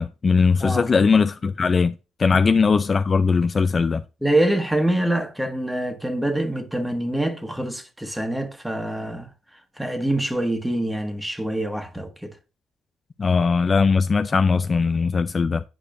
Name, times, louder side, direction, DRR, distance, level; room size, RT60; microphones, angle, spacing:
voice 1, 0.0-1.9 2.2-4.0 13.2-15.6, left 5 dB, 40° left, 0.4 m, -19 dB
voice 2, 0.6-0.9 4.2-9.3 9.8-12.3, right 1 dB, 5° right, 1.5 m, -25 dB
8.6 x 4.9 x 2.5 m
hypercardioid pair, 55°, 0 cm